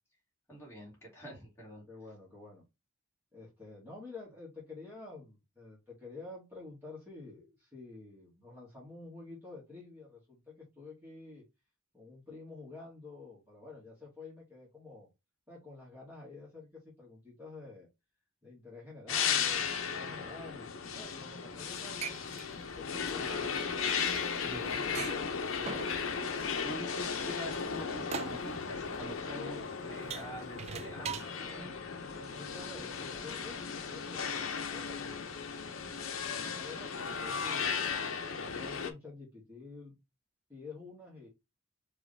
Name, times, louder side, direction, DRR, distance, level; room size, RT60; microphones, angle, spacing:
voice 1, 0.5-1.8 23.0-23.6 24.3-24.6 25.0-25.1 26.6-31.7, right 1 dB, 10° left, -5 dB, 2.5 m, -46 dB
voice 2, 1.9-2.6 3.3-11.4 11.9-15.1 15.5-17.9 18.4-23.8 24.4-25.9 29.4-30.3 30.8-35.2 35.8-37.7 38.2-40.0 40.5-41.3, left 3 dB, 10° right, -7 dB, 2.1 m, -50 dB
sound 1, 19.1-38.9, left 6 dB, 70° left, 0.7 m, -36 dB
sound 2, 21.7-31.3, right 6 dB, 30° right, 0.3 m, -43 dB
4.9 x 3.1 x 3.4 m, 0.23 s
head